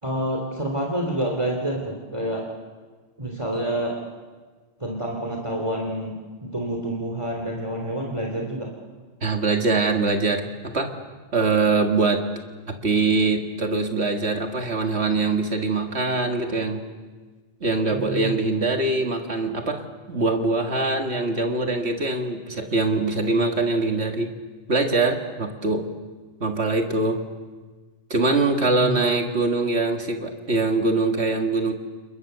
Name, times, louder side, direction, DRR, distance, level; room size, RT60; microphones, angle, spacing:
voice 1, 0.0-2.5 3.2-4.0 4.8-8.7 17.9-18.4 28.7-29.0, right 1 dB, 25° right, 0 dB, 3.1 m, -28 dB
voice 2, 9.2-10.9 11.3-12.2 12.7-16.8 17.6-24.3 24.7-25.9 26.4-27.2 28.1-31.7, right 3 dB, 60° right, 4 dB, 2.2 m, -23 dB
29.0 x 29.0 x 6.8 m, 1.4 s
omnidirectional pair, 1.3 m